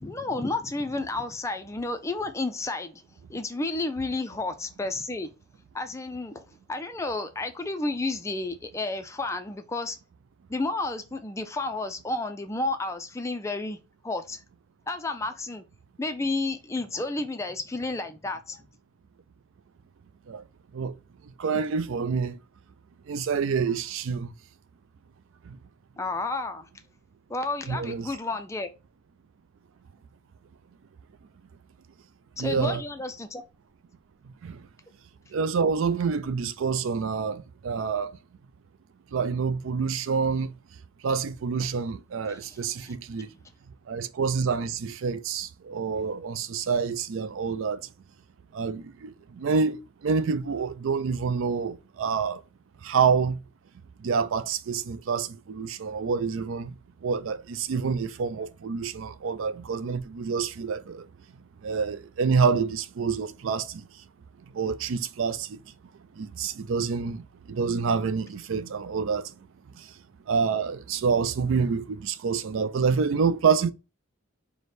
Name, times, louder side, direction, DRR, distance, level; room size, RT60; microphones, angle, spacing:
voice 1, 0.0-3.0 3.3-5.3 5.7-10.0 10.5-13.8 14.0-14.4 14.9-15.6 16.0-18.6 26.0-26.7 27.3-28.7 32.4-33.4 42.3-42.4 42.8-42.9, left 2 dB, 15° left, 0.3 m, -31 dB
voice 2, 21.4-22.4 23.1-24.3 25.5-25.6 27.7-28.1 32.4-32.8 34.4-34.6 35.3-38.1 39.1-40.5 41.0-43.3 43.9-47.8 48.5-52.4 52.8-53.4 54.0-56.7 57.0-61.1 61.6-63.9 64.5-65.6 66.2-69.3 69.8-69.9 70.3-73.7, right 5 dB, 65° right, 0.4 m, -27 dB
4.9 x 2.1 x 4.1 m
head